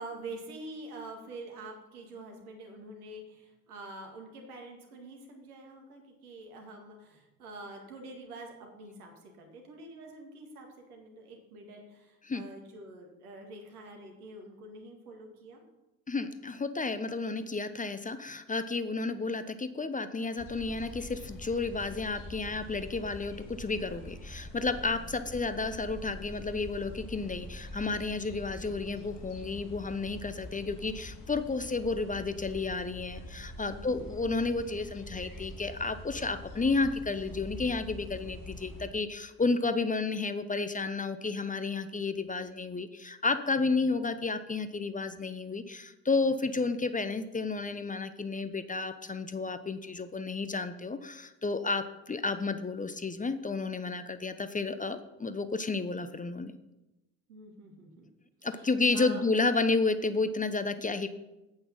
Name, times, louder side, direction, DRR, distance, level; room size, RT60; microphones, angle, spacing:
voice 1, 0.0-15.6 19.1-19.2 25.1-25.3 33.6-34.1 57.3-58.1 58.4-59.2, right 2 dB, 80° right, 2 dB, 2.1 m, -46 dB
voice 2, 16.1-56.5 58.4-61.1, left 3 dB, 20° left, 11 dB, 0.9 m, -31 dB
sound 1, 20.4-38.9, left 1 dB, 45° left, 3.0 m, -45 dB
8.8 x 8.6 x 5.7 m, 0.98 s
hypercardioid pair, 55°, 44 cm